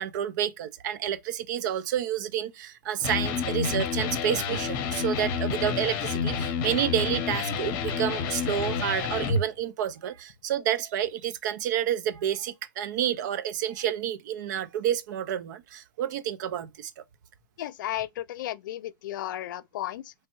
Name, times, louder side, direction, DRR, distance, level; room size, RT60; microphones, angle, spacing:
voice 1, 0.0-16.9, right 10 dB, 65° right, 0.5 m, -29 dB
Electric guitar, 3.0-9.4, left 5 dB, 45° left, 0.7 m, -29 dB
voice 2, 17.6-20.1, left 13 dB, 70° left, 0.4 m, -34 dB
3.2 x 2.1 x 2.9 m
hypercardioid pair, 130°, 11 cm